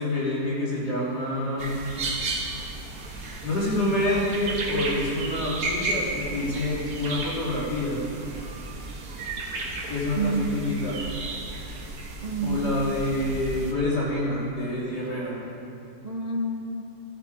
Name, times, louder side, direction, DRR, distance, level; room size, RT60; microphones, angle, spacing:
voice 1, 0.0-1.7 3.4-8.0 9.6-11.0 12.4-15.4, left 1 dB, 70° left, -6 dB, 3.7 m, -27 dB
sound 1, 1.6-13.7, right 2 dB, 60° right, 1.7 m, -34 dB
voice 2, 10.2-10.6 12.2-12.9 16.0-16.8, right 3 dB, 45° right, 1 dB, 0.5 m, -29 dB
14.0 x 12.0 x 4.7 m, 2.7 s
omnidirectional pair, 1.9 m